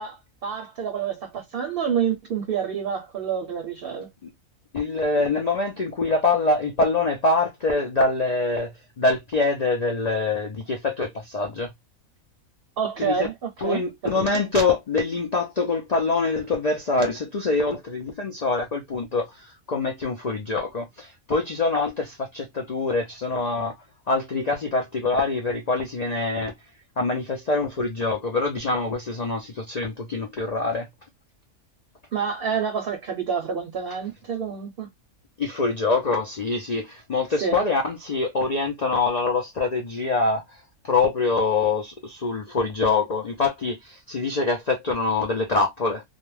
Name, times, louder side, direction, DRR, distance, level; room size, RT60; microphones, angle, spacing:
voice 1, 0.0-4.1 12.8-14.3 32.1-34.9 37.4-37.6, right 7 dB, 55° right, 0.7 m, -28 dB
voice 2, 4.7-8.7 9.0-11.7 13.0-13.3 13.6-23.7 24.1-26.5 27.0-30.9 35.4-40.4 40.8-46.0, left 3 dB, 65° left, 0.4 m, -24 dB
2.4 x 2.1 x 3.1 m
omnidirectional pair, 1.4 m